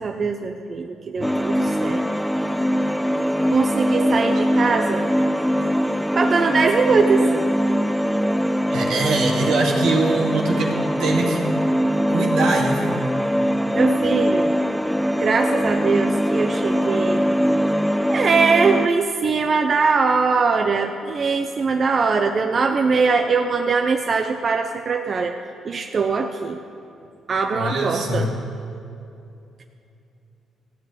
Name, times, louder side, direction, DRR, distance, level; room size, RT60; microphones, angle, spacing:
voice 1, 0.0-2.0 3.5-5.0 6.1-7.2 13.7-14.5 15.1-17.2 18.1-25.3 25.6-26.6 27.3-28.3, right 4 dB, 45° right, 5 dB, 0.7 m, -21 dB
sound 1, 1.2-18.9, equal, 5° left, 0.4 m, -22 dB
voice 2, 8.7-11.6 12.1-13.0 27.5-28.3, right 2 dB, 80° right, -2 dB, 2.2 m, -23 dB
14.5 x 6.2 x 9.0 m, 2.6 s
cardioid pair, 90°, 0 cm